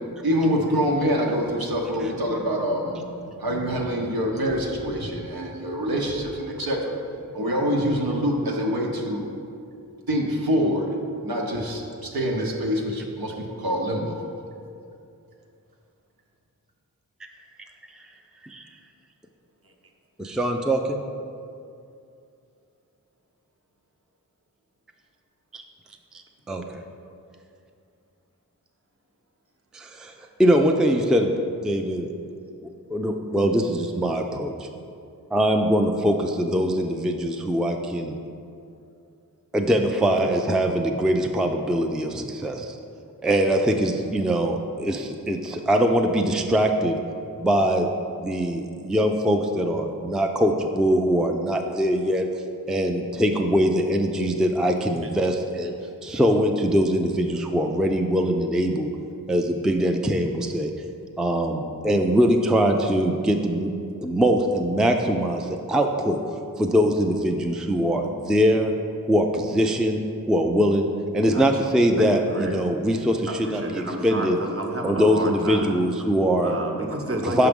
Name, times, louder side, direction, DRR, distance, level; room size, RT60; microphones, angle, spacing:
voice 1, 0.2-6.9 7.3-9.3 10.1-10.9 11.2-14.2, equal, 75° right, -1 dB, 1.0 m, -25 dB
voice 2, 20.2-21.0 26.5-26.8 29.7-30.1 30.4-31.3 31.6-32.1 32.9-34.7 35.3-38.2 39.5-42.8 43.2-47.0 47.4-47.9 48.2-52.3 52.7-55.7 56.0-58.9 59.3-60.7 61.2-63.7 64.0-66.2 66.6-68.7 69.0-70.0 70.3-70.9 71.1-74.4 74.8-76.6 77.2-77.5, equal, ahead, 4 dB, 0.4 m, -22 dB
voice 3, 72.0-72.6 73.3-75.8 76.4-77.5, right 1 dB, 40° right, 2 dB, 1.0 m, -30 dB
5.7 x 4.8 x 5.3 m, 2.5 s
cardioid pair, 40°, 36 cm